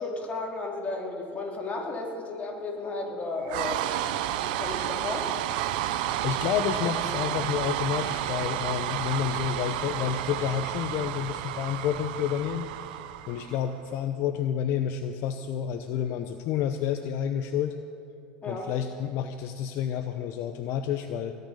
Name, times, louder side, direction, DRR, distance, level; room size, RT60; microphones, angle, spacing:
voice 1, 0.0-3.8 4.4-5.3 18.4-18.7, left 3 dB, 30° left, -1 dB, 3.4 m, -34 dB
sound 1, 3.5-13.8, right 12 dB, 80° right, 0.7 m, -31 dB
voice 2, 6.2-12.7 13.3-17.8 18.5-21.3, left 9 dB, 60° left, 7 dB, 0.8 m, -29 dB
20.0 x 6.7 x 9.8 m, 2.6 s
supercardioid pair, 95°, 5 cm